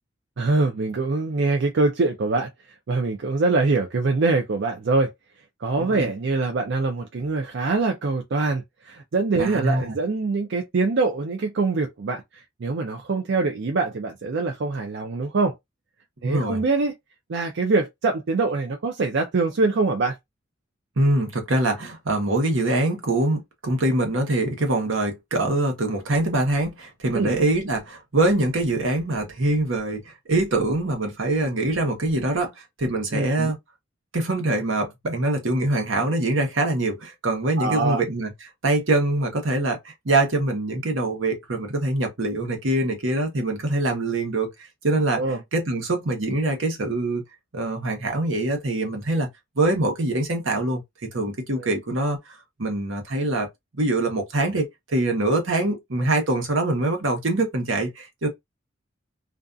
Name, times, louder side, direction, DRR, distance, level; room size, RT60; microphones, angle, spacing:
voice 1, 0.4-2.5 2.9-5.1 5.6-15.5 16.2-16.9 17.3-20.2 27.1-27.4 33.1-33.5 37.6-38.0 45.1-45.4 51.6-51.7, right 3 dB, 65° right, 0.5 m, -24 dB
voice 2, 9.4-9.9 16.2-16.6 21.0-33.6 34.1-38.3 38.6-44.5 44.8-45.2 45.5-47.2 47.5-49.3 49.6-50.8 51.1-53.5 53.7-58.3, right 2 dB, 85° right, 1.0 m, -24 dB
2.5 x 2.3 x 2.5 m
head